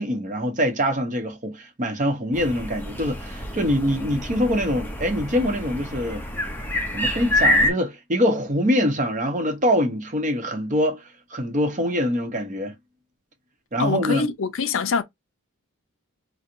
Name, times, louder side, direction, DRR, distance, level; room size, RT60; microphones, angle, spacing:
voice 1, 0.0-6.2 6.9-12.7 13.7-14.3, equal, 35° right, 0.7 m, -24 dB
sound 1, 2.3-7.7, left 1 dB, 10° left, 0.5 m, -26 dB
voice 2, 13.8-15.0, left 5 dB, 60° left, 0.4 m, -24 dB
4.3 x 2.0 x 2.5 m
head